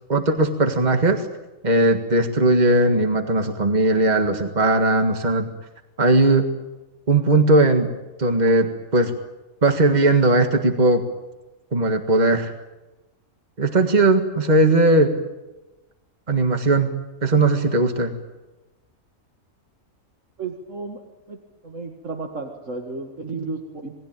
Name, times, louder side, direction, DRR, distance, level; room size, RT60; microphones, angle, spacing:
voice 1, 0.1-1.3 1.6-5.4 6.0-6.5 7.1-7.9 8.2-9.1 9.6-11.0 11.7-12.5 13.6-15.1 16.3-16.9 17.2-18.1, right 2 dB, 35° right, 5 dB, 1.9 m, -18 dB
voice 2, 20.4-21.0 21.3-21.4 21.6-24.0, right 3 dB, 65° right, 2 dB, 2.4 m, -33 dB
27.5 x 20.5 x 9.1 m, 1.1 s
omnidirectional pair, 1.4 m